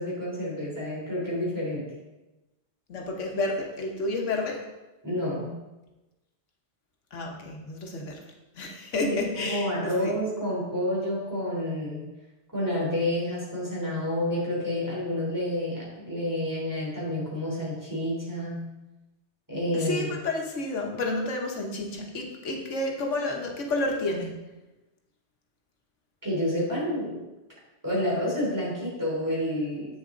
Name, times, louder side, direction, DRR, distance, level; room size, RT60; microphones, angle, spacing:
voice 1, 0.0-1.9 5.0-5.5 9.1-12.1 12.5-18.6 19.5-20.1 26.2-27.2 27.8-30.0, left 1 dB, 15° right, -6 dB, 3.3 m, -29 dB
voice 2, 2.9-4.6 7.1-8.2 8.5-9.7 10.0-10.1 19.7-24.3, left 2 dB, 90° left, 1 dB, 1.5 m, -30 dB
8.2 x 7.2 x 3.8 m, 1.0 s
omnidirectional pair, 1.2 m